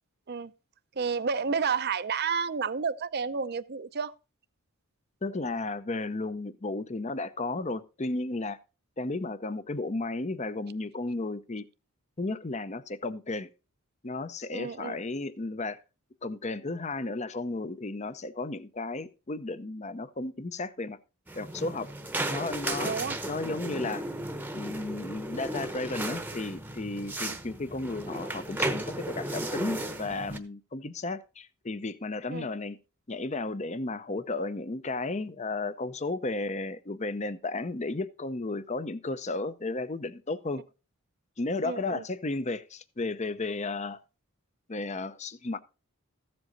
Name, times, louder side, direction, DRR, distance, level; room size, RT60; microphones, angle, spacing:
voice 1, 1.0-4.1 14.5-15.0 22.8-23.2 27.3-27.4 32.3-32.5 41.6-42.0, right 5 dB, 45° right, 0.6 m, -31 dB
voice 2, 5.2-8.6 9.0-11.6 12.2-13.5 14.0-15.8 16.2-21.0 21.3-21.9 22.3-22.9 23.3-24.0 24.5-32.8 33.1-40.6 41.4-44.0 44.7-45.6, left 2 dB, 30° left, 0.7 m, -34 dB
sound 1, 21.3-30.4, right 1 dB, 10° right, 0.9 m, -35 dB
14.5 x 7.7 x 4.0 m
head